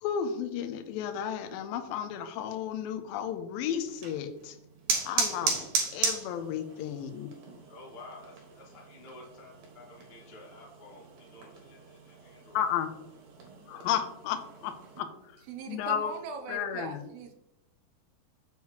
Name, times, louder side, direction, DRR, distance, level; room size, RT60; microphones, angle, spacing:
voice 1, 0.0-4.6 5.1-5.7 5.9-7.4 12.5-12.9 13.7-16.1 16.5-17.0, left 9 dB, 80° left, 8 dB, 2.3 m, -33 dB
sound 1, 3.9-15.0, right 5 dB, 70° right, 3.0 m, -36 dB
voice 2, 7.7-12.6, left 2 dB, 50° left, -3 dB, 0.7 m, -51 dB
voice 3, 15.5-17.3, right 5 dB, 85° right, 5 dB, 2.9 m, -40 dB
7.5 x 7.3 x 3.0 m, 0.83 s
omnidirectional pair, 4.6 m